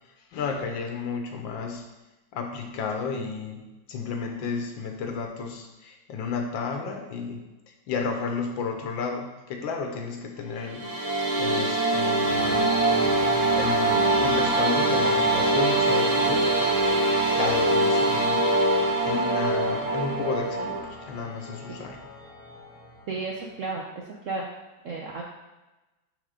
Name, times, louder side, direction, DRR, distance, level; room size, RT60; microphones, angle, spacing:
voice 1, 0.3-1.9 2.3-7.5 7.9-12.8 13.5-18.5 19.0-22.0, left 5 dB, 80° left, 4 dB, 1.6 m, -32 dB
sound 1, 10.6-20.8, right 2 dB, 30° right, 0.7 m, -23 dB
sound 2, 12.3-23.5, left 2 dB, 25° left, 0.9 m, -38 dB
voice 2, 23.1-24.4 24.8-25.2, right 3 dB, 65° right, -1 dB, 0.7 m, -33 dB
6.5 x 3.8 x 4.9 m, 1.1 s
omnidirectional pair, 2.1 m